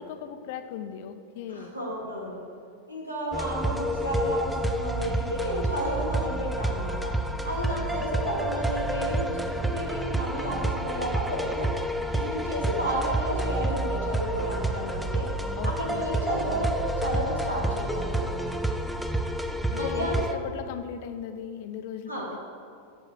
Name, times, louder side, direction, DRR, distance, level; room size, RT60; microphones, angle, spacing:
voice 1, 0.0-1.7 7.7-8.1 15.6-16.1 19.7-22.4, left 8 dB, 50° left, 9 dB, 0.6 m, -38 dB
voice 2, 1.5-2.4 2.9-7.1 7.4-11.7 12.1-15.3 15.6-18.3 19.7-20.4 22.1-22.3, equal, 85° right, -4 dB, 2.4 m, -32 dB
sound 1, 3.3-20.3, right 1 dB, 5° right, 0.6 m, -29 dB
7.8 x 7.2 x 7.5 m, 2.3 s
figure-of-eight pair, 90°, 0 cm